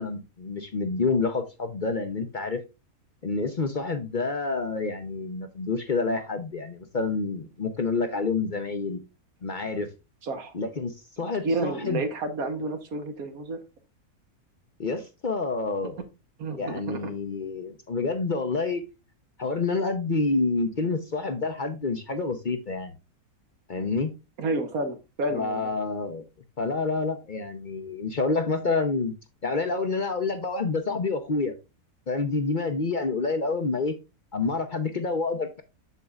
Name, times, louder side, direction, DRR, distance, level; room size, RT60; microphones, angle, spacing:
voice 1, 0.0-2.6 3.2-9.0 9.4-9.9 10.5-12.0 14.8-16.0 16.6-18.8 19.4-22.9 23.7-24.1 25.3-26.2 26.6-29.1 29.4-31.5 32.1-33.9 34.3-35.6, left 3 dB, 45° left, 6 dB, 0.7 m, -28 dB
voice 2, 10.2-10.5 11.4-13.6 16.4-17.1 24.4-25.7, right 2 dB, 70° right, 7 dB, 1.6 m, -30 dB
8.2 x 6.8 x 2.4 m, 0.27 s
omnidirectional pair, 1.6 m